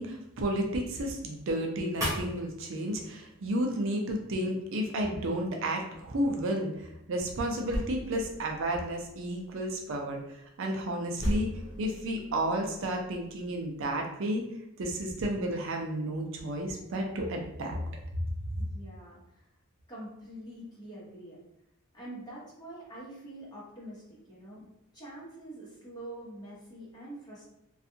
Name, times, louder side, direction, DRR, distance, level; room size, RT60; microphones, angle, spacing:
voice 1, 0.0-6.7 7.1-10.2 10.6-11.5 11.8-14.5 14.8-17.8, right 1 dB, 65° right, 1 dB, 0.4 m, -32 dB
sound 1, 2.0-3.2 3.4-3.5 7.7-10.1 11.2-14.0, equal, 15° right, 0.8 m, -37 dB
voice 2, 18.6-19.5 19.9-21.4 21.9-24.6 24.9-27.5, right 1 dB, 20° left, -8 dB, 1.1 m, -45 dB
2.5 x 2.3 x 2.7 m, 0.83 s
head